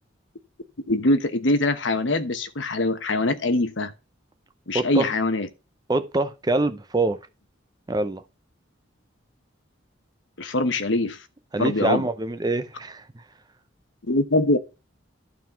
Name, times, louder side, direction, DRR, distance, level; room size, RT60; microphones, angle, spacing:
voice 1, 0.9-3.9 4.7-5.5 10.4-11.2 11.6-12.0 14.1-14.6, left 2 dB, 70° left, 1.1 m, -23 dB
voice 2, 4.7-5.1 5.9-7.2 7.9-8.2 11.5-13.0, right 2 dB, 20° right, 0.6 m, -24 dB
11.5 x 4.0 x 5.7 m
head